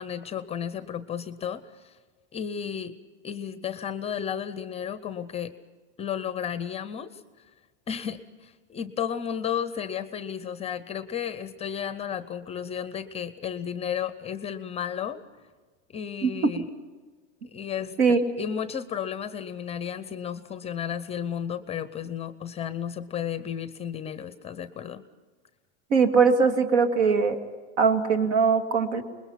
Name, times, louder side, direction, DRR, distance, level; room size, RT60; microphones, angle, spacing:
voice 1, 0.0-2.0 2.3-2.9 3.2-5.5 6.0-7.2 7.9-15.2 15.9-16.7 17.4-25.0, left 8 dB, 15° left, 13 dB, 0.6 m, -33 dB
voice 2, 25.9-27.4 27.8-29.0, right 5 dB, 70° right, 7 dB, 2.3 m, -21 dB
26.5 x 21.0 x 5.8 m, 1.4 s
supercardioid pair, 135°, 36 cm